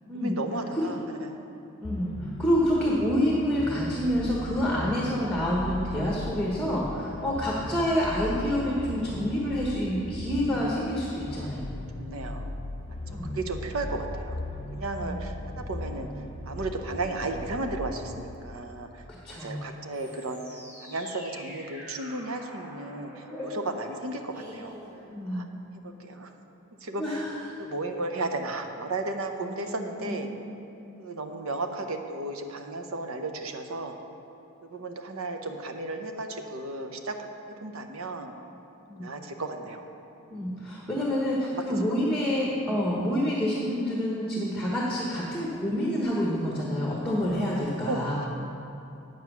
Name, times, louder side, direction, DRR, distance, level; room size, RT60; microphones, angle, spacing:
voice 1, 0.1-1.5 4.6-4.7 11.4-11.7 12.0-12.5 12.9-13.0 13.3-14.3 14.7-16.1 16.5-20.4 20.8-24.7 25.3-25.5 26.0-26.3 26.8-27.2 27.6-30.3 31.0-34.0 34.6-37.1 37.6-38.4 38.9-39.9 40.2-40.3 41.5-41.6 47.9-48.3, right 2 dB, 70° right, 5 dB, 0.8 m, -34 dB
sound 1, 1.8-18.3, left 1 dB, 25° left, 0.5 m, -38 dB
voice 2, 1.8-11.7 13.1-13.3 15.0-15.2 19.1-19.6 25.1-25.5 27.0-27.6 30.0-30.2 38.9-39.1 40.3-48.2, equal, 5° left, -4 dB, 1.0 m, -28 dB
sound 2, 19.9-25.6, equal, 10° right, 2.1 m, -44 dB
8.8 x 7.5 x 6.0 m, 2.8 s
head